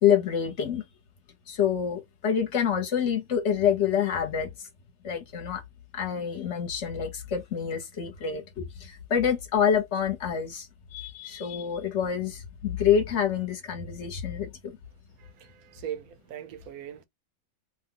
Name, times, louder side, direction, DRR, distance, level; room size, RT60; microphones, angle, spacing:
voice 1, 0.0-0.8 1.5-4.7 5.0-5.6 5.9-14.5, left 8 dB, 55° left, 1.1 m, -27 dB
voice 2, 15.2-17.0, right 10 dB, 75° right, 1.0 m, -40 dB
2.8 x 2.2 x 3.7 m
omnidirectional pair, 1.6 m